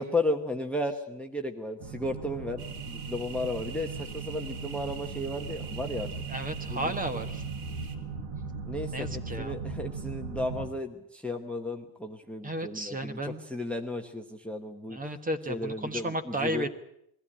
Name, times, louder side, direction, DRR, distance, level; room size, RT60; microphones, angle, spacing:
voice 1, 0.0-6.1 6.7-6.9 8.7-15.0 15.5-16.7, left 1 dB, ahead, 5 dB, 1.1 m, -34 dB
sound 1, 1.8-10.7, right 5 dB, 80° right, 5.3 m, -38 dB
sound 2, 2.6-8.0, right 7 dB, 55° right, 3.8 m, -46 dB
voice 2, 6.3-7.4 8.9-9.6 12.4-13.4 14.9-16.7, right 1 dB, 15° right, 10 dB, 1.3 m, -33 dB
22.0 x 15.5 x 10.0 m, 0.77 s
cardioid pair, 160°, 49 cm